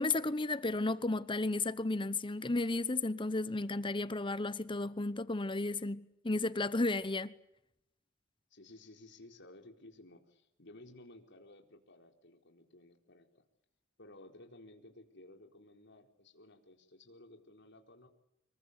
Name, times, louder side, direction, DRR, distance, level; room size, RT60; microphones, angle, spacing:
voice 1, 0.0-7.3, left 2 dB, 25° left, 0.9 m, -33 dB
voice 2, 8.5-13.4 14.0-18.1, left 1 dB, 60° left, 4.3 m, -56 dB
26.0 x 22.5 x 8.3 m
head